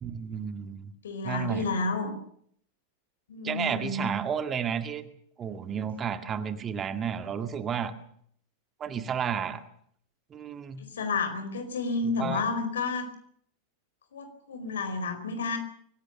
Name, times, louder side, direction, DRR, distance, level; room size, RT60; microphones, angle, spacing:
voice 1, 0.0-0.9 1.2-1.6 3.4-5.1 5.4-7.9 8.8-9.6 10.3-10.8 12.2-12.4, right 7 dB, 25° right, 9 dB, 2.0 m, -32 dB
voice 2, 1.0-2.2 3.3-4.1 10.8-13.1 14.1-15.6, left 3 dB, 65° left, 8 dB, 4.7 m, -31 dB
24.5 x 18.0 x 6.8 m, 0.64 s
figure-of-eight pair, 90°, 0 cm